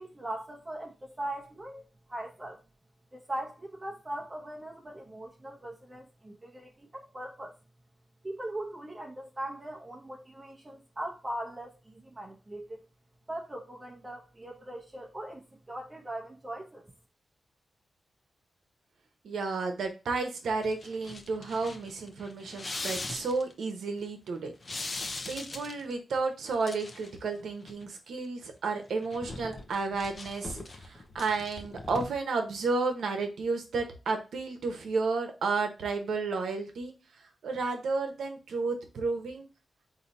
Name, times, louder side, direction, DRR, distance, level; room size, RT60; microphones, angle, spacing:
voice 1, 0.0-1.8 2.1-2.6 3.1-7.5 8.2-12.8 13.3-16.9, right 1 dB, 25° right, 0.9 m, -40 dB
voice 2, 19.2-24.5 25.3-36.9 37.4-39.5, right 4 dB, 85° right, 0.9 m, -32 dB
sound 1, 20.6-23.5 24.6-25.9 26.5-27.2 27.5-27.9 28.9-32.1, left 3 dB, 45° left, 0.7 m, -40 dB
3.9 x 2.8 x 4.1 m
cardioid pair, 55°, 0 cm